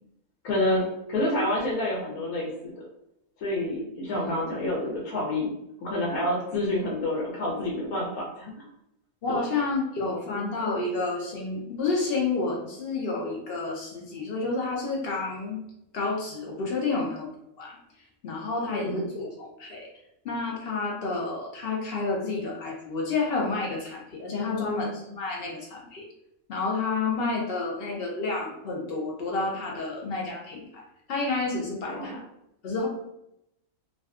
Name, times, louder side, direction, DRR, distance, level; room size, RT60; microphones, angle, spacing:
voice 1, 0.4-2.8 3.4-5.5 5.8-8.5 9.3-9.4 10.3-10.5 18.7-19.1 24.4-24.9 31.9-32.2, left 1 dB, 85° left, -3 dB, 1.1 m, -28 dB
voice 2, 4.1-4.5 9.2-15.6 15.9-17.3 17.6-17.8 18.2-19.9 20.2-26.0 26.5-30.8 31.1-32.2 32.6-32.9, left 3 dB, 70° left, -2 dB, 0.5 m, -30 dB
2.5 x 2.3 x 2.3 m, 0.81 s
omnidirectional pair, 1.5 m